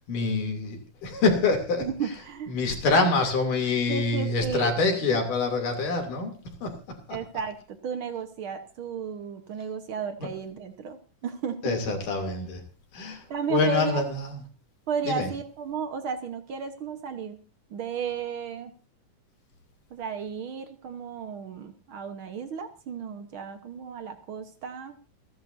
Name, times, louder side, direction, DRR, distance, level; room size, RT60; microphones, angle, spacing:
voice 1, 0.1-1.9 2.5-6.3 6.6-6.7 10.2-10.3 11.6-12.6 12.9-14.4 15.0-15.3, left 3 dB, 60° left, 3 dB, 4.4 m, -26 dB
voice 2, 1.8-2.5 3.9-4.8 7.1-11.8 13.3-14.0 14.9-17.4 17.7-18.7 19.9-25.0, right 6 dB, 80° right, 7 dB, 1.1 m, -34 dB
30.0 x 11.0 x 2.7 m, 0.33 s
omnidirectional pair, 4.1 m